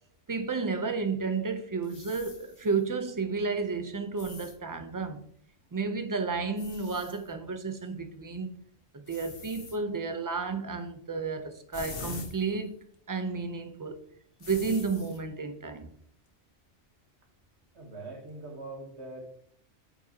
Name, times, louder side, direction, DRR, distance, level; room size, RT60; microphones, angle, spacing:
voice 1, 0.3-5.2 5.7-8.5 8.9-12.8 13.1-14.0 14.4-15.9, right 4 dB, 25° right, 0.5 m, -32 dB
sound 1, 1.8-2.8 4.2-4.6 6.1-6.2 6.6-7.3 8.6-8.7 9.1-9.8 11.7-12.6 12.9-13.0 14.4-15.2, left 3 dB, 55° left, 1.2 m, -44 dB
voice 2, 17.7-19.3, right 2 dB, 65° right, 1.6 m, -42 dB
8.9 x 5.4 x 2.9 m
omnidirectional pair, 1.2 m